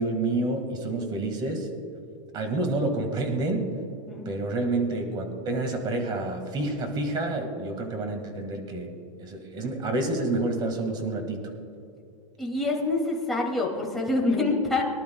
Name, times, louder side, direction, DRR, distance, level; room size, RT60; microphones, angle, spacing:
voice 1, 0.0-1.7 2.3-3.7 4.3-8.9 9.2-11.4, right 2 dB, 25° right, 5 dB, 1.9 m, -28 dB
voice 2, 12.4-14.8, left 2 dB, ahead, -4 dB, 2.3 m, -26 dB
23.5 x 11.5 x 2.3 m, 2.6 s
supercardioid pair, 160°, 17 cm